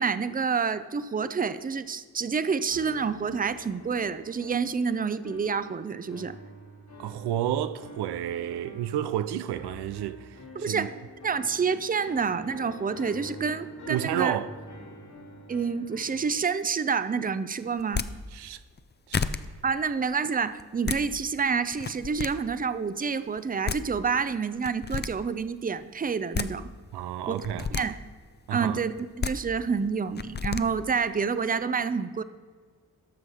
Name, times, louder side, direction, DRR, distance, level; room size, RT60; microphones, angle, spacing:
voice 1, 0.0-6.4 10.6-10.9 11.2-14.4 15.5-18.0 19.6-26.7 27.3-28.0 28.5-32.2, right 5 dB, 20° right, 0.6 m, -28 dB
sound 1, 2.7-16.4, equal, 75° left, 2.9 m, -46 dB
voice 2, 7.0-10.9 13.9-14.5 18.3-18.6 19.1-19.2 26.9-27.9 28.5-28.8, right 11 dB, 85° right, 0.5 m, -31 dB
sound 2, 17.8-18.1 18.8-18.9 19.1-19.4 20.6-21.0 21.7-22.3 23.4-23.5 23.7-23.8 24.6-25.1 26.1-26.5 27.4-27.8 29.0-29.3 30.2-30.6, left 6 dB, 25° left, 0.5 m, -30 dB
13.0 x 6.1 x 4.9 m
supercardioid pair, 50°, 39 cm